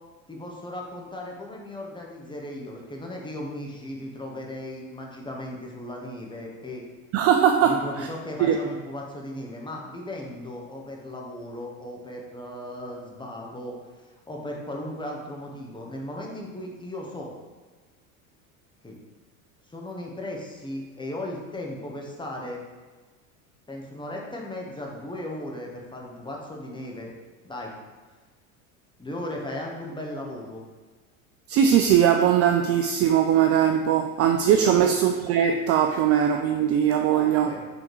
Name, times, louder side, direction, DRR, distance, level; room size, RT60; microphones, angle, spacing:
voice 1, 0.3-6.8 7.6-17.3 18.8-19.0 19.7-22.6 23.7-27.1 27.4-27.7 29.0-30.6 34.6-34.9 37.1-37.7, left 1 dB, 10° left, -1 dB, 1.3 m, -36 dB
voice 2, 7.1-8.1 8.4-8.6 31.5-37.5, right 9 dB, 35° right, 5 dB, 0.4 m, -20 dB
5.5 x 3.5 x 4.8 m, 1.4 s
hypercardioid pair, 80°, 42 cm